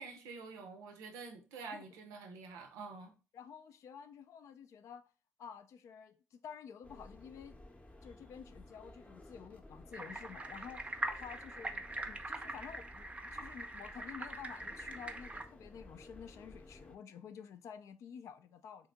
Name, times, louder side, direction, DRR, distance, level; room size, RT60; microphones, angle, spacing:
voice 1, 0.0-3.2, right 4 dB, 90° right, 0.6 m, -48 dB
voice 2, 3.3-5.1 5.4-7.6 8.0-18.9, left 7 dB, 70° left, 0.4 m, -51 dB
sound 1, 6.8-17.0, left 1 dB, 25° left, 0.7 m, -56 dB
sound 2, 9.9-15.4, right 1 dB, 25° right, 0.5 m, -43 dB
2.8 x 2.6 x 3.4 m
supercardioid pair, 55°, 5 cm